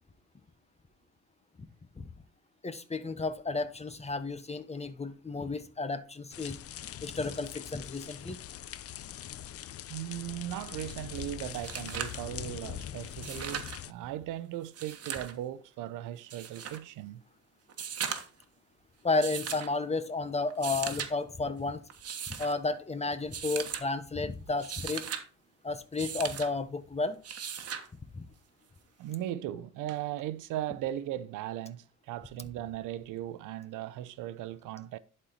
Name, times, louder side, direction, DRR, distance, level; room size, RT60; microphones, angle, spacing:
voice 1, 2.6-6.6 7.0-8.4 19.0-21.8 22.3-25.0 25.6-27.2 28.1-28.3, left 3 dB, 20° left, 1.1 m, -32 dB
sound 1, 6.3-13.9, left 11 dB, 50° left, 0.5 m, -42 dB
voice 2, 9.9-17.2 29.0-35.0, right 12 dB, 90° right, 0.6 m, -38 dB
sound 2, 11.2-11.3 11.5-12.2 13.1-13.8 14.6-15.3 16.3-16.8 17.7-18.4 19.2-19.7 20.5-21.1 21.9-22.5 23.3-23.8 24.5-25.2 26.0-26.5 27.2-27.9 29.3-29.4, right 8 dB, 55° right, 1.4 m, -38 dB
11.0 x 4.3 x 4.3 m
cardioid pair, 90°, 30 cm